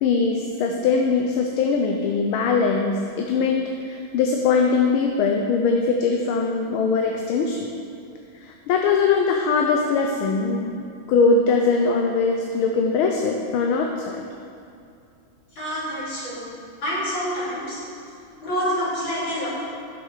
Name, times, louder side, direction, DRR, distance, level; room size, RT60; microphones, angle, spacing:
voice 1, 0.0-7.7 8.4-14.2, left 4 dB, 80° left, 2 dB, 1.5 m, -21 dB
voice 2, 15.6-16.5 16.8-17.8 18.4-19.5, equal, 60° left, -8 dB, 3.7 m, -27 dB
9.4 x 6.1 x 6.2 m, 2.5 s
omnidirectional pair, 2.4 m